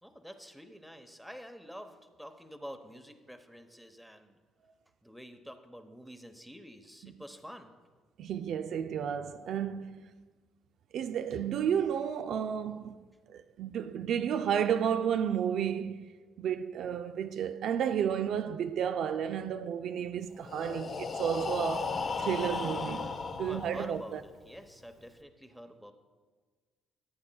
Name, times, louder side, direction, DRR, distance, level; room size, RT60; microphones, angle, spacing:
voice 1, 0.0-4.4 5.0-7.8 23.5-25.9, equal, ahead, 1.0 m, -48 dB
voice 2, 8.2-10.1 10.9-13.0 13.3-16.1 16.4-24.2, right 8 dB, 65° right, 0.3 m, -32 dB
Breathing, 20.3-24.2, left 4 dB, 50° left, 0.8 m, -36 dB
14.0 x 8.5 x 2.3 m
supercardioid pair, 60°, 0 cm